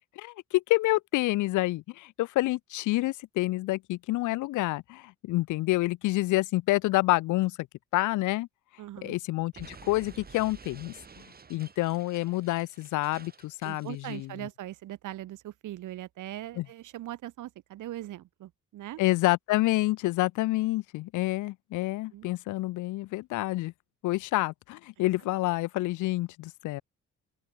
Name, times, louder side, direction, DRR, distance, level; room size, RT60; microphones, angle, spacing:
voice 1, 0.2-7.6 7.9-8.5 9.0-11.2 11.5-14.5 16.6-16.7 19.0-23.7 24.0-26.8, left 19 dB, 80° left, 0.5 m, -28 dB
voice 2, 8.8-9.2 13.6-19.0 22.1-22.3, right 14 dB, 80° right, 3.9 m, -40 dB
Explosion, 9.5-14.3, right 5 dB, 30° right, 1.8 m, -51 dB
open air
cardioid pair, 90°, 30 cm